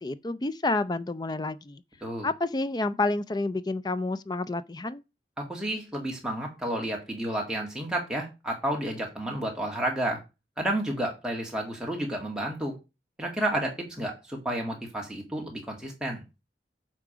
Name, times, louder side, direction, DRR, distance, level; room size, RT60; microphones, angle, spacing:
voice 1, 0.0-1.8 2.2-5.0, left 2 dB, 25° left, 0.4 m, -29 dB
voice 2, 5.4-10.2 10.6-12.8 13.2-16.2, right 1 dB, 5° right, 1.9 m, -31 dB
8.4 x 3.8 x 5.0 m
head